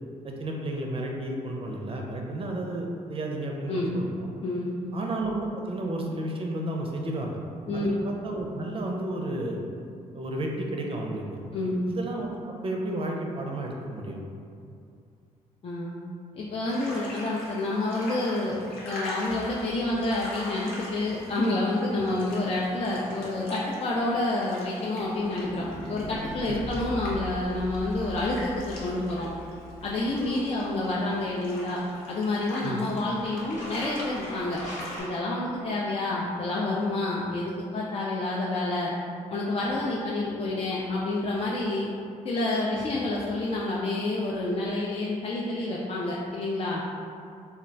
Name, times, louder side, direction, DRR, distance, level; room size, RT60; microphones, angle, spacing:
voice 1, 0.2-4.3 4.9-7.4 7.7-9.6 10.1-11.4 11.6-14.2 26.4-26.6 32.6-32.8, right 1 dB, 40° right, 0 dB, 0.5 m, -32 dB
voice 2, 3.7-4.0 4.4-4.9 7.7-7.9 11.5-11.9 15.6-16.0 16.4-29.3 29.8-31.8 32.1-34.6 35.0-38.9 39.3-41.9 42.2-46.8, left 2 dB, 45° left, -5 dB, 0.4 m, -28 dB
sound 1, 16.7-35.0, left 1 dB, 85° left, 0.6 m, -42 dB
sound 2, 19.3-21.4 23.3-31.3, left 1 dB, 20° left, 0.9 m, -42 dB
sound 3, 33.1-36.0, equal, 60° left, 0.9 m, -43 dB
2.3 x 2.1 x 3.8 m, 2.4 s
cardioid pair, 70°, 15 cm